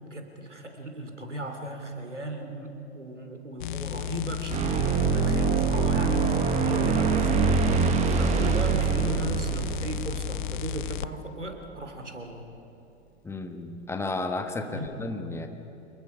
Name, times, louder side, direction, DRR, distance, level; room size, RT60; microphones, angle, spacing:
voice 1, 0.1-12.5 14.6-15.0, equal, 85° right, 4 dB, 3.0 m, -36 dB
sound 1, 3.6-11.1 14.8-14.9, left 11 dB, 45° left, 0.6 m, -33 dB
sound 2, 4.5-11.2, right 6 dB, 20° right, 1.0 m, -25 dB
voice 2, 13.2-15.5, left 3 dB, 5° left, 6 dB, 1.2 m, -33 dB
27.0 x 22.0 x 5.0 m, 2.9 s
figure-of-eight pair, 105°, 35 cm